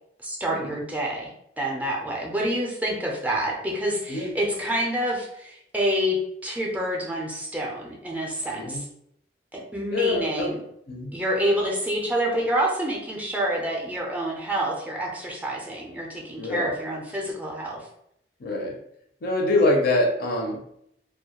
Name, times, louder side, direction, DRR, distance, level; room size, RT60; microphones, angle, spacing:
voice 1, 0.2-1.3 1.6-8.9 9.5-10.5 11.1-17.9, right 1 dB, 10° right, -2 dB, 0.4 m, -27 dB
voice 2, 9.9-10.5 10.9-11.1 16.4-16.7 18.4-18.8 19.2-20.8, left 2 dB, 60° left, 0 dB, 0.5 m, -25 dB
2.2 x 2.1 x 2.8 m, 0.74 s
head